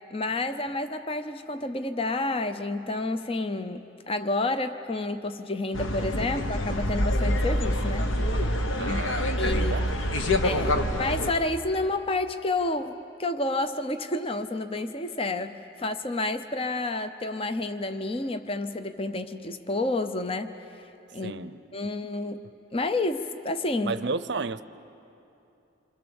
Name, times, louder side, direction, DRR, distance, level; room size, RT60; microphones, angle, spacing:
voice 1, 0.1-8.1 8.4-8.6 8.8-9.8 10.4-20.6 21.1-21.4 21.7-24.0, left 2 dB, 25° left, 9 dB, 0.6 m, -30 dB
sound 1, 5.7-11.3, left 1 dB, 70° left, 1.3 m, -26 dB
voice 2, 8.8-10.0 10.7-10.8 21.2-21.6 23.8-24.6, right 4 dB, 55° right, 13 dB, 0.6 m, -33 dB
27.5 x 25.5 x 7.1 m, 2.8 s
head